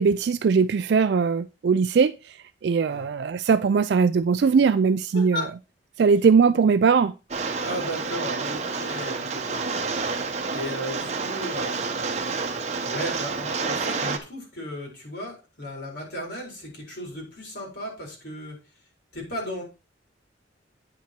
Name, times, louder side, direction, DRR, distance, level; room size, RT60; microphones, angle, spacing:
voice 1, 0.0-5.4 6.0-7.1, right 5 dB, 60° right, 0.3 m, -20 dB
voice 2, 5.1-5.5 7.6-10.0 10.5-12.4 12.7-18.6 19.1-19.6, equal, 55° left, 4.4 m, -35 dB
Rain, 7.3-14.2, right 4 dB, 35° right, 0.9 m, -29 dB
8.9 x 5.7 x 4.5 m
head